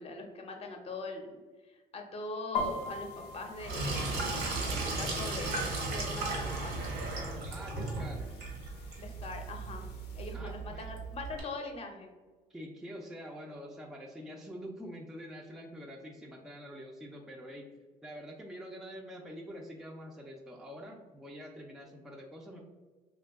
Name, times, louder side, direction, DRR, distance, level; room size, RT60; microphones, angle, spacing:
voice 1, 0.0-1.4 1.6-4.1 4.6-7.0 9.0-12.1, left 3 dB, 35° left, 3 dB, 0.6 m, -42 dB
sound 1, 2.5-10.4, left 2 dB, 80° left, 0.5 m, -44 dB
Sink (filling or washing), 3.6-11.4, right 3 dB, 90° right, 1.1 m, -36 dB
voice 2, 7.5-8.4 10.3-10.9 12.5-17.7 18.0-22.6, equal, 5° right, 0 dB, 0.3 m, -46 dB
2.6 x 2.2 x 3.4 m, 1.3 s
cardioid pair, 110°, 17 cm